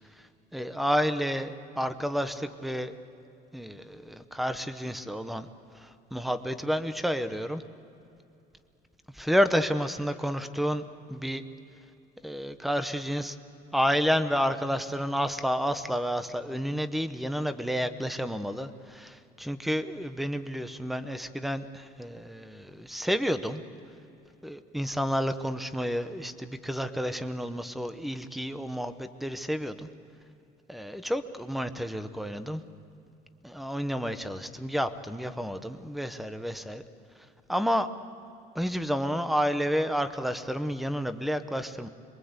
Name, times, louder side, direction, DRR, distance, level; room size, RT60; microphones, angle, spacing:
voice 1, 0.5-2.9 3.5-5.5 5.7-7.6 9.1-11.4 12.2-13.4 13.7-23.6 24.4-29.9 30.7-32.6 33.4-36.8 37.5-37.9 38.5-41.9, equal, ahead, 10 dB, 0.8 m, -30 dB
26.5 x 22.5 x 8.1 m, 2.7 s
cardioid pair, 175°, 19 cm